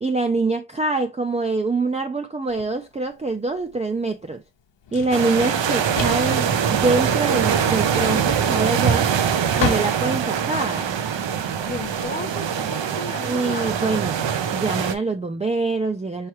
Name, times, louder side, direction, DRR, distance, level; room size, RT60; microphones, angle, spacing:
voice 1, 0.0-4.4 4.9-9.1 9.6-10.9 13.2-14.2 14.5-16.3, right 3 dB, 15° right, 0.3 m, -24 dB
Drawer open or close, 2.5-12.1, left 7 dB, 90° left, 0.9 m, -34 dB
sound 1, 5.1-14.9, right 7 dB, 85° right, 0.7 m, -23 dB
voice 2, 11.4-13.8, left 3 dB, 20° left, 0.8 m, -35 dB
4.7 x 3.1 x 2.9 m
wide cardioid pair, 140°, 43 cm